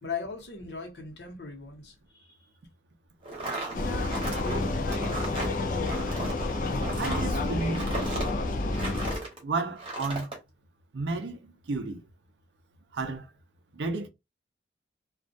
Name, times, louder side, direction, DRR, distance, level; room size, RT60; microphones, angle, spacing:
voice 1, 0.0-2.4 3.8-4.9, left 4 dB, 75° left, 0.9 m, -39 dB
sound 1, 3.2-9.4 9.8-10.4, right 2 dB, 30° right, 0.9 m, -36 dB
Vehicle, 3.7-9.2, left 2 dB, 45° left, 0.3 m, -29 dB
voice 2, 7.0-7.9 9.4-10.3 10.9-12.0 12.9-13.3 13.7-14.1, right 3 dB, 80° right, 0.5 m, -32 dB
2.3 x 2.1 x 2.5 m
head